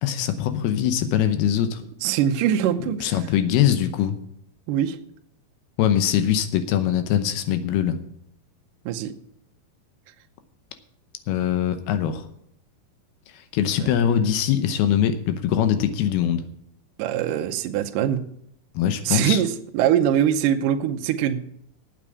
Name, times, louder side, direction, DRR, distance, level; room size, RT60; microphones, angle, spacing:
voice 1, 0.0-1.8 3.0-4.2 5.8-8.0 11.3-12.3 13.5-16.4 18.8-19.4, left 10 dB, 80° left, 10 dB, 2.8 m, -22 dB
voice 2, 2.0-3.2 4.7-5.0 8.9-9.1 13.8-13.9 17.0-18.3 19.0-21.4, right 10 dB, 75° right, 5 dB, 2.1 m, -23 dB
8.9 x 8.6 x 8.2 m, 0.72 s
omnidirectional pair, 4.6 m